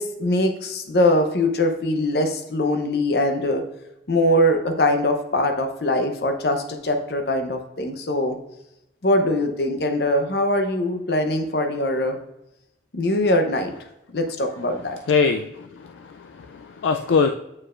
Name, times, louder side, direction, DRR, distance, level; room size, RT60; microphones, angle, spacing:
voice 1, 0.0-3.6 4.1-8.4 9.0-12.2 12.9-13.7 14.1-15.0, left 1 dB, 60° left, 5 dB, 0.7 m, -22 dB
voice 2, 15.1-17.3, left 5 dB, 90° left, 6 dB, 0.4 m, -23 dB
8.5 x 4.5 x 2.4 m, 0.86 s
head